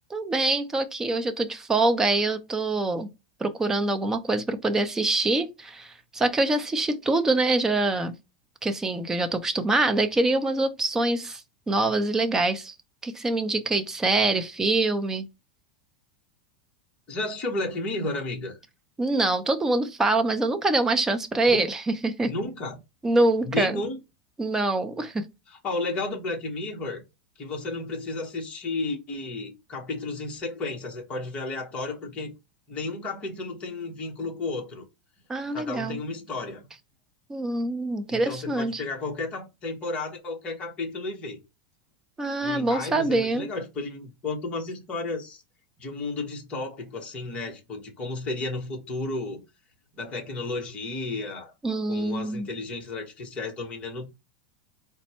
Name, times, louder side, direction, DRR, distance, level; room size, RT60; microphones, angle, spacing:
voice 1, 0.1-3.1 3.4-8.1 8.6-12.7 13.0-15.3 19.0-22.3 23.0-23.7 24.4-25.2 35.3-36.0 37.3-38.8 42.2-43.5 51.6-52.5, right 2 dB, 10° right, 0.5 m, -25 dB
voice 2, 17.1-18.6 21.5-21.7 22.2-22.8 23.4-24.0 25.5-27.0 27.4-32.3 32.7-34.8 35.5-36.7 38.1-41.4 42.4-45.4 45.8-49.4 49.9-51.5 51.9-54.1, left 2 dB, 25° left, 1.2 m, -33 dB
4.1 x 2.2 x 4.3 m
supercardioid pair, 160°, 5 cm